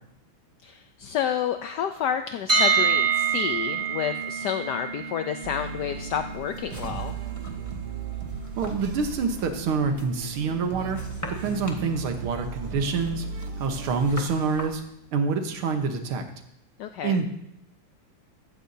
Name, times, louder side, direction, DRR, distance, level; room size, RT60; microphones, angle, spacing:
voice 1, 0.6-7.2 16.8-17.2, left 9 dB, 75° left, 7 dB, 1.0 m, -30 dB
sound 1, 2.5-14.4, right 6 dB, 25° right, 4.5 m, -30 dB
sound 2, 5.4-14.2, right 6 dB, 60° right, 1.2 m, -37 dB
sound 3, 5.9-14.8, left 1 dB, 10° left, 1.2 m, -43 dB
voice 2, 8.6-11.0 11.4-13.3 13.6-14.8 15.1-16.2 17.0-17.3, right 4 dB, 85° right, 5 dB, 2.0 m, -26 dB
15.0 x 13.5 x 2.8 m, 0.79 s
omnidirectional pair, 2.3 m